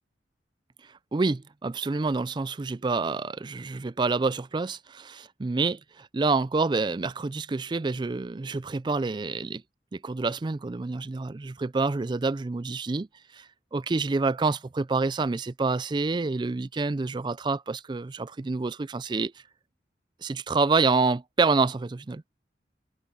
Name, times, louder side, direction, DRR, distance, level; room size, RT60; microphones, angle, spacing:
voice 1, 1.1-9.6 9.9-13.1 13.3-13.5 13.7-19.3 20.2-22.2, right 3 dB, 25° right, 0.4 m, -27 dB
head